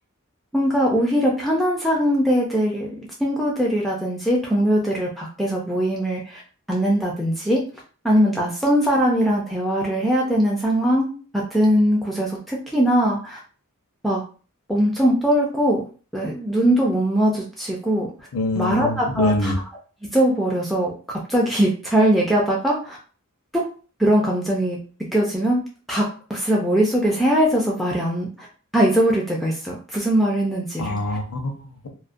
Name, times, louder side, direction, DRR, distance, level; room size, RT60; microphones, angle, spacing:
voice 1, 0.5-2.9 3.2-6.4 6.7-7.6 8.0-13.4 14.0-14.2 14.7-15.8 16.1-18.1 18.6-19.5 20.1-20.9 21.3-23.0 23.5-23.6 24.0-24.8 25.1-25.6 25.9-28.5 28.7-31.0, equal, ahead, -3 dB, 0.3 m, -21 dB
voice 2, 18.3-19.6 30.8-31.9, left 2 dB, 75° left, 4 dB, 0.6 m, -24 dB
2.3 x 2.1 x 2.5 m, 0.38 s
head